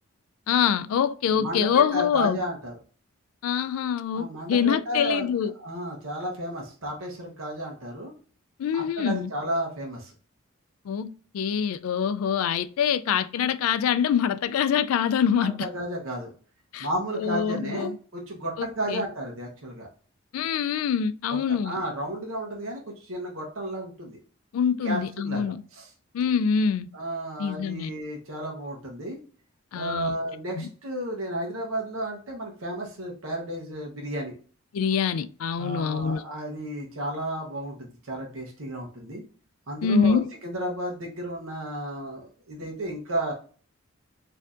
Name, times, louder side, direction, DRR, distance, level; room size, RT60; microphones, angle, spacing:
voice 1, 0.5-2.4 3.4-5.5 8.6-9.3 10.9-15.7 16.7-16.9 17.2-18.0 18.6-19.0 20.3-21.8 24.5-25.6 26.1-26.9 27.4-27.9 29.7-30.2 30.6-30.7 34.7-36.2 39.8-40.3, left 7 dB, 80° left, 0.3 m, -25 dB
voice 2, 1.4-2.7 4.1-5.3 5.6-8.1 8.7-10.1 15.6-16.3 16.8-19.9 21.5-24.2 24.8-25.9 26.9-29.2 29.7-34.4 35.6-39.2 39.7-43.3, right 1 dB, 70° right, 0.8 m, -33 dB
4.4 x 2.7 x 2.4 m
head